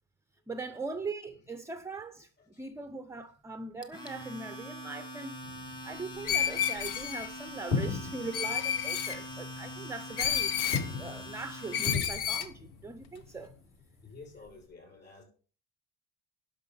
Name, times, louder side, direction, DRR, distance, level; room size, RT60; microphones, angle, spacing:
voice 1, 0.5-10.5 10.9-13.5, right 3 dB, 5° right, 0.4 m, -41 dB
Domestic sounds home sounds, 3.8-11.9, equal, 10° left, 1.2 m, -43 dB
sound 1, 5.4-14.7, left 5 dB, 60° left, 4.9 m, -40 dB
Screech, 6.3-7.3 8.3-9.2 10.2-10.9 11.7-12.5, left 9 dB, 85° left, 1.3 m, -30 dB
voice 2, 14.0-15.2, left 4 dB, 25° left, 5.9 m, -50 dB
10.5 x 6.2 x 5.5 m
cardioid pair, 150°, 38 cm